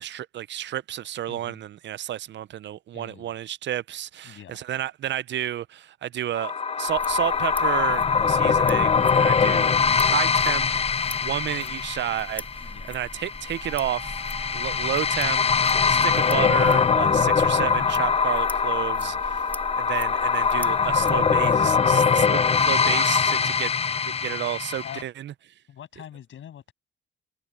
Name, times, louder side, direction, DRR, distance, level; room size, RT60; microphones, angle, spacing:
voice 1, 0.0-14.2 14.5-19.4 19.8-22.4 22.7-23.7 24.1-25.3, right 11 dB, 65° right, 0.5 m, -31 dB
voice 2, 1.3-1.6 2.9-3.3 4.2-4.6 12.6-13.0 19.0-19.2 20.9-21.5 21.9-22.1 23.3-23.8 24.8-25.1 25.7-26.7, left 10 dB, 75° left, 7.5 m, -44 dB
sound 1, 6.3-25.0, left 6 dB, 30° left, 0.5 m, -23 dB
sound 2, 6.9-21.6, left 1 dB, 10° left, 2.5 m, -41 dB
sound 3, 13.6-23.6, right 4 dB, 25° right, 0.7 m, -45 dB
wide cardioid pair, 140°, 20 cm